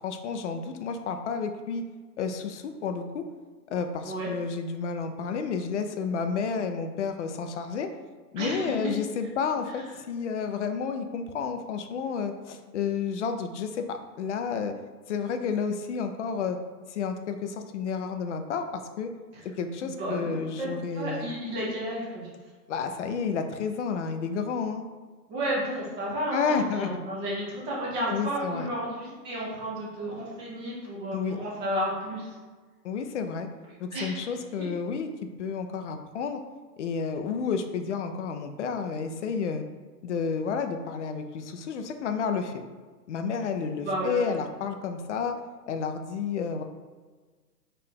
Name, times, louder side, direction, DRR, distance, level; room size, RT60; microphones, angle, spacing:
voice 1, 0.0-1.8 2.2-3.2 3.7-7.9 8.3-14.7 15.1-16.6 16.9-18.7 19.0-19.1 19.4-21.3 22.7-24.9 26.3-26.9 28.1-28.7 31.1-31.4 32.8-33.5 33.8-36.4 36.8-39.6 40.0-42.5 43.1-45.4 45.7-46.6, left 5 dB, 50° left, 7 dB, 0.5 m, -31 dB
voice 2, 8.4-8.9 19.3-19.4 20.0-22.3 25.3-32.4 33.9-34.7 43.8-44.4, right 1 dB, 10° right, -5 dB, 0.5 m, -32 dB
4.7 x 2.5 x 3.6 m, 1.4 s
hypercardioid pair, 125°, 49 cm